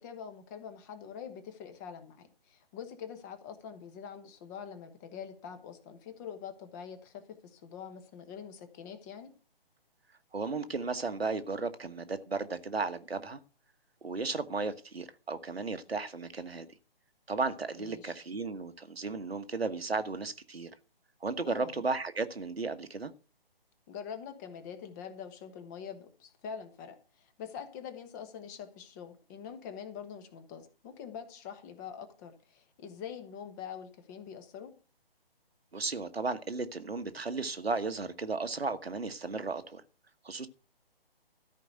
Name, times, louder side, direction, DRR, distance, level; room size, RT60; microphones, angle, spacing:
voice 1, 0.0-9.3 17.8-18.1 21.5-21.8 23.9-34.7, left 7 dB, 20° left, 1.2 m, -45 dB
voice 2, 10.3-13.4 14.0-16.7 17.3-20.7 21.2-23.1 35.7-39.8 40.2-40.5, right 4 dB, 80° right, 1.4 m, -34 dB
13.5 x 5.2 x 7.8 m
figure-of-eight pair, 145°, 30 cm